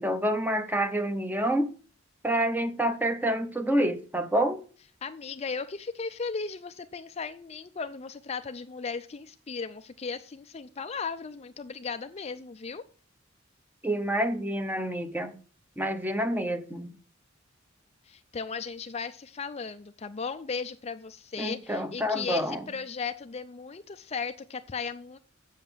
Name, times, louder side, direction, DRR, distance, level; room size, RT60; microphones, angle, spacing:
voice 1, 0.0-1.7 2.2-4.6 13.8-15.3 15.8-16.9 21.4-22.7, right 1 dB, 10° right, 0.8 m, -28 dB
voice 2, 5.0-12.8 18.0-25.2, left 5 dB, 30° left, 0.4 m, -36 dB
8.0 x 7.4 x 6.1 m
head